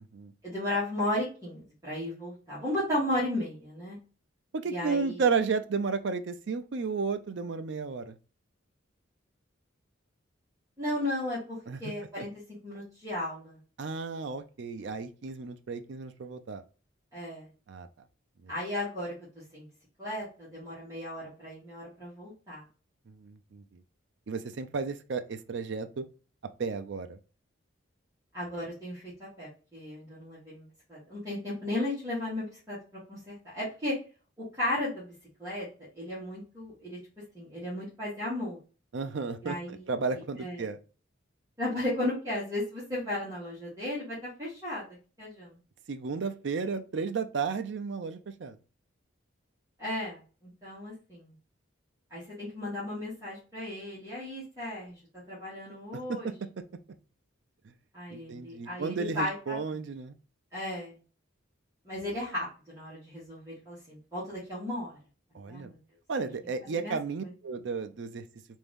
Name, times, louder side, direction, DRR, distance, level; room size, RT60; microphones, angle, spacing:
voice 1, 0.4-4.0 4.7-5.2 10.8-12.3 12.6-13.6 17.1-17.5 18.5-19.7 20.0-22.6 28.3-34.0 34.5-35.1 35.4-35.7 35.9-37.0 37.3-38.6 39.4-40.6 41.6-45.6 49.8-51.3 52.1-56.3 57.9-59.6 60.5-61.0 61.8-65.0 65.5-65.8 66.6-66.9 67.2-67.3, left 1 dB, 15° right, -9 dB, 1.5 m, -35 dB
voice 2, 4.5-8.2 11.7-11.8 12.2-12.3 13.8-16.6 17.7-17.9 18.4-18.5 23.1-23.8 24.3-26.1 26.6-27.2 38.9-40.8 45.9-48.6 55.9-56.3 57.6-57.7 58.1-60.2 65.3-65.7 66.1-68.2, right 5 dB, 60° right, 9 dB, 0.4 m, -33 dB
3.4 x 2.6 x 3.5 m, 0.36 s
head